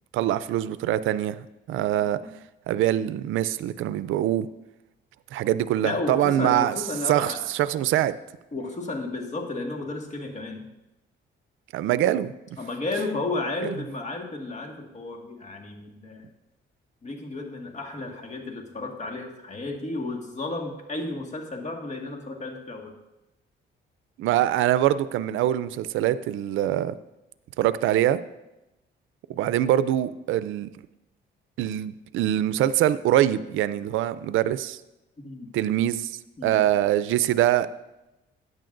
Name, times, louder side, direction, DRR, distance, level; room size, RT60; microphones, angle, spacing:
voice 1, 0.1-2.2 2.7-4.5 5.3-6.7 7.1-8.1 11.7-12.3 13.6-13.7 24.2-27.0 27.6-28.2 29.3-30.7 31.6-34.8 35.5-36.1 36.4-37.7, right 12 dB, 85° right, 15 dB, 0.4 m, -24 dB
voice 2, 5.8-7.5 8.5-10.7 12.6-16.3 17.0-22.9 35.2-35.5 36.4-36.6, left 2 dB, 35° left, 2 dB, 1.8 m, -33 dB
13.5 x 9.4 x 2.6 m, 0.96 s
cardioid pair, 90°, 20 cm